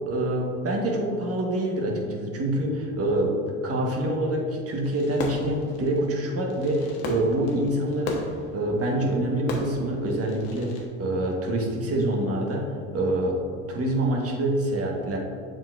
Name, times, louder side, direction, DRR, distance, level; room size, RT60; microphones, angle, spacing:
voice 1, 0.0-3.4 3.6-13.4 13.7-15.2, right 1 dB, 35° right, 0 dB, 1.3 m, -26 dB
Fireworks, 4.8-10.9, left 3 dB, 70° left, 1.1 m, -36 dB
7.4 x 5.1 x 2.5 m, 2.4 s
supercardioid pair, 90°, 40 cm